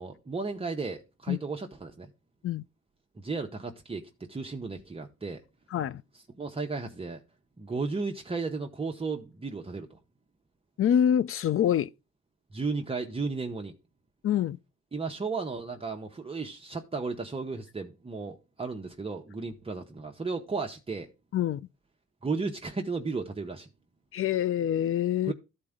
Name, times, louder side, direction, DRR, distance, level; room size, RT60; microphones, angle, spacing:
voice 1, 0.0-2.1 3.2-5.4 6.4-7.2 7.6-10.0 12.5-13.7 14.9-21.1 22.2-23.7 25.3-25.4, right 4 dB, 20° right, 0.9 m, -34 dB
voice 2, 5.7-6.0 10.8-11.9 14.2-14.6 21.3-21.6 24.1-25.3, left 10 dB, 45° left, 0.5 m, -25 dB
13.0 x 4.4 x 3.6 m
cardioid pair, 90°, 30 cm